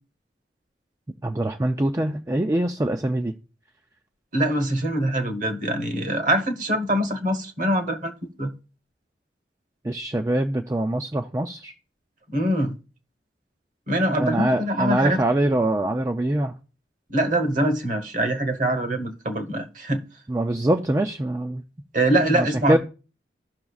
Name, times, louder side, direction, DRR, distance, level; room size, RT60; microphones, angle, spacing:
voice 1, 1.2-3.3 9.8-11.7 14.2-16.6 20.3-21.6 22.3-22.8, right 1 dB, 15° right, 0.4 m, -24 dB
voice 2, 4.3-8.1 8.4-8.5 12.3-12.7 13.9-15.2 17.1-20.0 21.9-22.8, right 1 dB, 45° right, 1.1 m, -23 dB
15.0 x 6.0 x 2.4 m
head